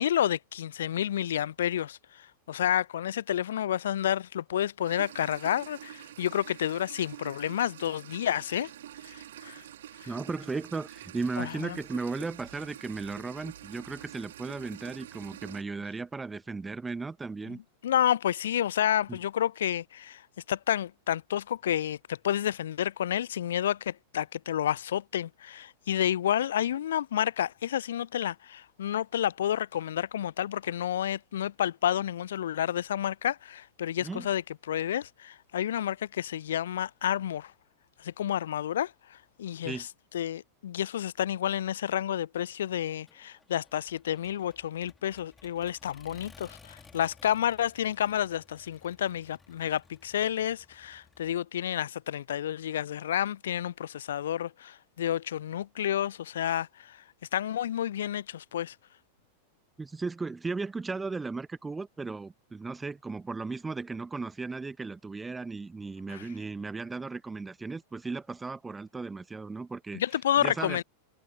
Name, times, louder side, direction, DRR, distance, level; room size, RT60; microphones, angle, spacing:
voice 1, 0.0-8.7 9.0-9.6 10.0-10.1 11.4-11.8 17.5-20.2 20.5-34.4 34.7-37.5 38.0-39.9 40.1-57.0 57.3-58.8 66.1-66.3 69.9-70.8, left 10 dB, 60° left, 0.4 m, -30 dB
sound 1, 4.8-15.6, right 11 dB, 60° right, 2.7 m, -47 dB
voice 2, 10.1-17.6 19.1-19.2 34.0-34.3 39.6-39.9 59.8-70.0 70.4-70.8, right 4 dB, 10° right, 0.9 m, -36 dB
Accelerating revving vroom, 43.1-51.3, left 4 dB, 15° left, 2.1 m, -57 dB
figure-of-eight pair, 90°, 0 cm